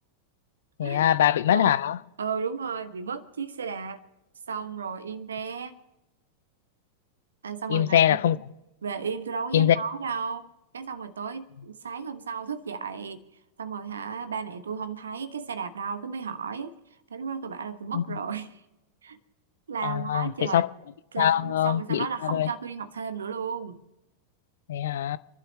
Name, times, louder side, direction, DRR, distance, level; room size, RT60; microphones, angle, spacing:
voice 1, 0.8-2.0 7.7-8.4 9.5-9.8 17.9-18.0 19.8-20.7 21.2-22.5 24.7-25.2, left 11 dB, 60° left, 0.5 m, -23 dB
voice 2, 1.5-1.8 2.2-4.0 4.5-5.8 7.4-8.1 8.8-10.5 10.7-13.2 13.6-16.8 17.1-18.6 19.0-19.2 19.7-20.7 21.1-23.8, right 6 dB, 70° right, 1.1 m, -34 dB
29.5 x 12.0 x 3.1 m
figure-of-eight pair, 90°, 0 cm